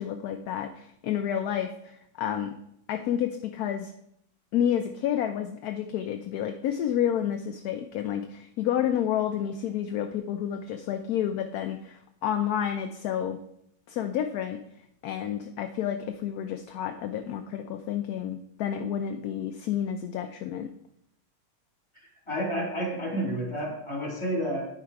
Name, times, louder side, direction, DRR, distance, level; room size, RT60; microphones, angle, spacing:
voice 1, 0.0-2.6 2.9-3.9 4.5-13.4 13.9-14.6 15.0-20.7, left 9 dB, 70° left, 6 dB, 0.9 m, -30 dB
voice 2, 22.3-24.7, equal, 15° left, -3 dB, 2.6 m, -30 dB
10.0 x 4.9 x 4.7 m, 0.75 s
omnidirectional pair, 2.0 m